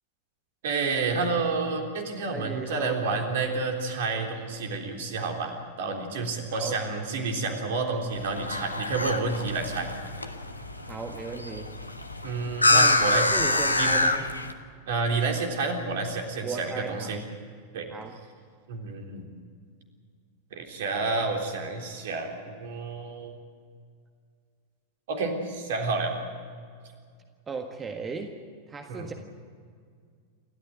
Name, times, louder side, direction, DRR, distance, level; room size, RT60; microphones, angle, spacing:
voice 1, 0.6-9.9 12.2-14.0 14.9-17.2 17.7-17.9 18.7-19.3 20.5-23.4 25.1-26.1 28.9-29.1, right 3 dB, 55° right, 3 dB, 3.6 m, -30 dB
voice 2, 2.2-3.1 6.5-6.8 10.8-11.7 12.7-14.3 16.4-17.2 17.9-18.2 27.5-28.4 28.7-29.1, right 4 dB, 20° right, 4 dB, 1.7 m, -36 dB
sound 1, 8.1-14.5, left 2 dB, 85° left, 1.3 m, -26 dB
29.0 x 13.5 x 9.2 m, 2.1 s
figure-of-eight pair, 90°, 0 cm